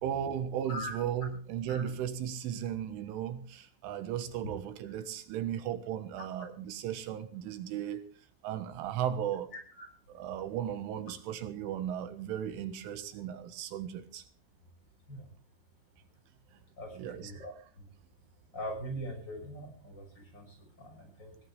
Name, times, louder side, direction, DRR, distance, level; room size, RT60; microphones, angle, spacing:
voice 1, 0.0-8.1 8.4-9.5 10.2-14.2 17.0-17.5, right 10 dB, 80° right, 3.8 m, -36 dB
voice 2, 9.5-9.9 12.6-12.7 15.1-15.3 16.8-17.8 18.5-21.4, equal, 20° left, 6.1 m, -42 dB
21.0 x 18.0 x 3.4 m
omnidirectional pair, 5.6 m